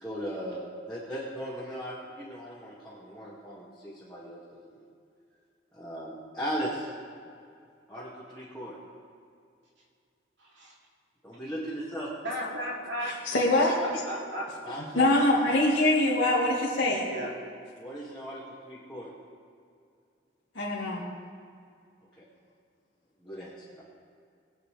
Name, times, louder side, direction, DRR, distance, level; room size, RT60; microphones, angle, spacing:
voice 1, 0.0-4.7 5.7-6.9 7.9-8.8 11.2-12.1 14.6-15.1 17.8-19.1 22.2-22.3 23.2-23.8, equal, 5° left, 2.1 m, -38 dB
voice 2, 10.4-10.7 12.2-13.2 13.8-14.7 17.1-17.3, equal, 75° right, 2.9 m, -35 dB
voice 3, 13.0-13.7 14.9-17.1 20.6-21.0, left 1 dB, 90° left, 1.8 m, -24 dB
21.5 x 8.9 x 3.3 m
head